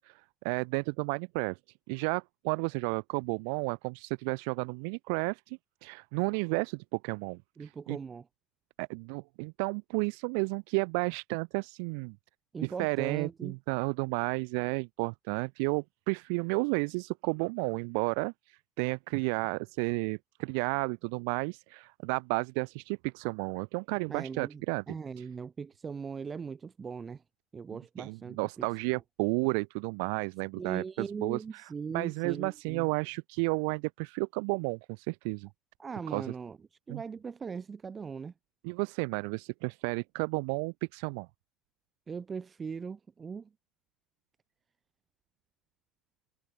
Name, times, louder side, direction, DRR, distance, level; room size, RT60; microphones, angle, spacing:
voice 1, 0.0-1.6 1.9-8.0 8.8-12.2 12.6-24.8 25.2-25.3 28.0-31.7 31.9-35.5 36.1-36.3 36.9-37.0 38.6-41.3, right 38 dB, 90° right, 1.0 m, -32 dB
voice 2, 7.6-8.2 12.5-13.6 24.1-27.2 27.5-28.7 28.9-29.0 30.5-32.9 35.8-36.6 36.9-38.3 42.1-43.5, right 5 dB, 35° right, 2.8 m, -39 dB
supercardioid pair, 80°, 0 cm